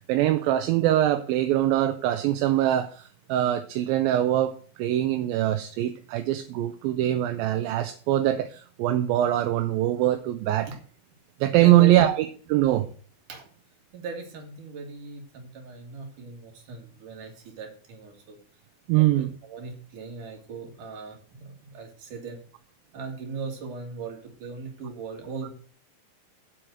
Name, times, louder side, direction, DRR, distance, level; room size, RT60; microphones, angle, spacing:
voice 1, 0.1-10.7 11.4-12.9 18.9-19.3, right 13 dB, 80° right, 8 dB, 2.4 m, -23 dB
voice 2, 11.6-12.0 13.3-13.5 13.9-18.4 19.0-22.4 22.9-25.5, right 4 dB, 60° right, 2 dB, 3.5 m, -39 dB
7.8 x 6.3 x 7.7 m, 0.44 s
omnidirectional pair, 4.2 m